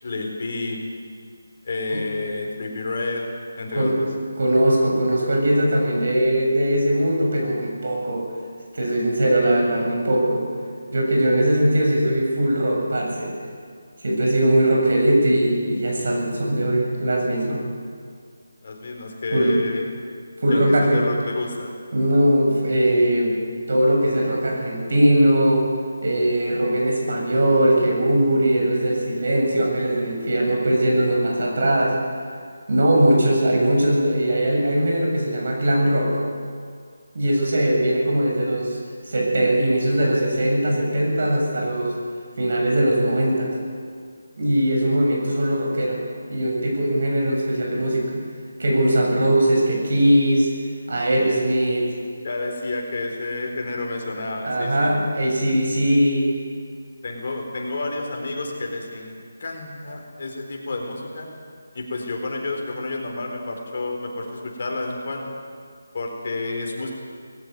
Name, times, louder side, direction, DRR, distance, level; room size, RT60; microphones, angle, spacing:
voice 1, 0.0-0.8 1.6-3.3 3.6-4.1 18.6-19.8 20.5-21.7 37.6-37.7 52.2-54.9 57.0-61.3 61.7-65.4 65.9-66.9, left 2 dB, 45° left, 1 dB, 4.1 m, -30 dB
voice 2, 4.4-8.2 8.7-10.4 10.9-13.3 14.0-17.6 19.3-19.6 20.4-21.0 21.9-23.4 23.7-25.7 26.0-32.0 32.7-36.1 37.1-38.8 39.1-42.0 42.4-43.5 44.4-46.0 46.3-48.2 48.6-50.5 50.9-51.9 54.4-56.3, right 1 dB, 60° right, 0 dB, 7.4 m, -20 dB
19.5 x 15.5 x 9.4 m, 2.1 s
figure-of-eight pair, 170°, 0 cm